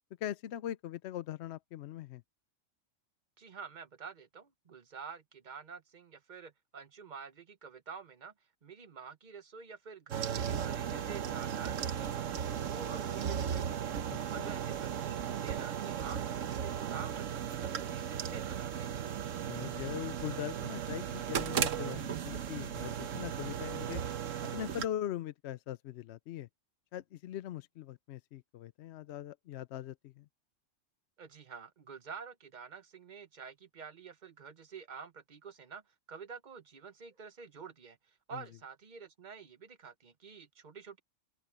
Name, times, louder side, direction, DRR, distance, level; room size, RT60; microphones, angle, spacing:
voice 1, 0.2-2.2 14.4-14.5 19.5-24.0 24.5-26.5 26.9-30.3 38.3-38.4, left 11 dB, 65° left, 0.8 m, -41 dB
voice 2, 3.4-8.3 8.6-18.9 31.2-35.8 36.1-41.0, right 6 dB, 40° right, 1.0 m, -49 dB
sound 1, 10.1-24.9, right 9 dB, 75° right, 1.2 m, -36 dB
open air
omnidirectional pair, 1.3 m